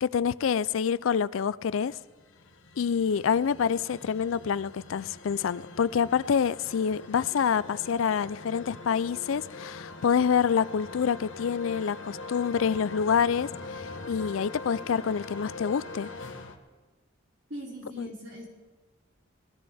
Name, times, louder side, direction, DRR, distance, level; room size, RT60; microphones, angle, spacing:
voice 1, 0.0-2.0 2.8-16.1 18.0-18.1, left 7 dB, 90° left, 0.4 m, -27 dB
sound 1, 1.9-16.5, left 3 dB, 70° left, 1.3 m, -43 dB
voice 2, 17.5-18.5, equal, 60° right, 5.1 m, -40 dB
20.5 x 15.5 x 3.5 m
head